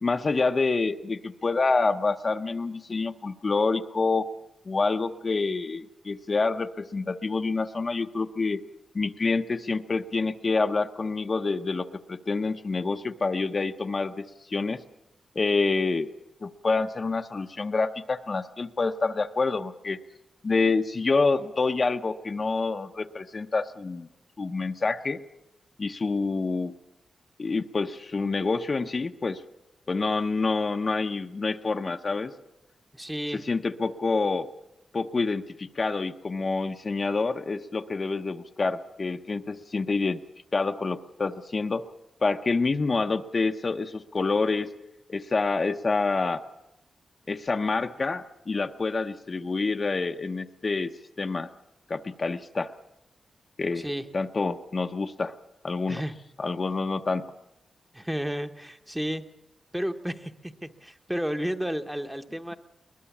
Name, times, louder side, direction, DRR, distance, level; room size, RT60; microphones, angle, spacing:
voice 1, 0.0-4.3 4.7-8.6 8.9-14.8 15.3-16.1 16.4-20.0 20.4-24.1 24.4-25.2 25.8-26.7 27.4-29.4 29.9-32.3 33.4-34.5 34.9-40.2 40.5-41.8 42.2-44.7 45.1-46.4 47.3-50.9 51.2-51.5 51.9-52.7 53.6-53.8 54.1-55.3 55.6-56.0 56.4-57.2, left 3 dB, 35° left, 6 dB, 0.7 m, -27 dB
voice 2, 32.9-33.4 53.8-54.0 55.9-56.2 57.9-59.2 59.7-62.5, equal, 5° right, 7 dB, 0.9 m, -32 dB
21.5 x 20.0 x 7.2 m, 0.89 s
wide cardioid pair, 125°, 0 cm